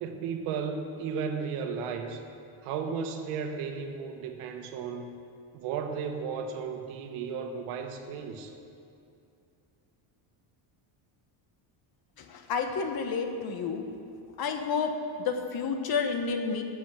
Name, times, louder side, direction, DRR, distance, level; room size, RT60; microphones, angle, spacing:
voice 1, 0.0-2.2 2.6-5.1 5.5-8.5, right 6 dB, 85° right, 5 dB, 1.3 m, -34 dB
voice 2, 12.2-13.9 14.4-16.6, left 5 dB, 45° left, 5 dB, 1.2 m, -30 dB
15.0 x 6.2 x 6.4 m, 2.6 s
cardioid pair, 120°, 50 cm